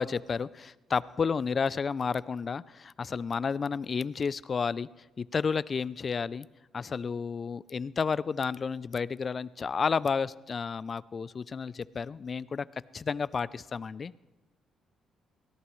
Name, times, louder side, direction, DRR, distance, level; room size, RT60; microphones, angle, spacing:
voice 1, 0.0-4.9 5.2-6.5 6.7-12.7 12.9-14.2, left 5 dB, 40° left, 19 dB, 0.4 m, -31 dB
23.5 x 17.0 x 3.2 m, 1.1 s
cardioid pair, 90°, 0 cm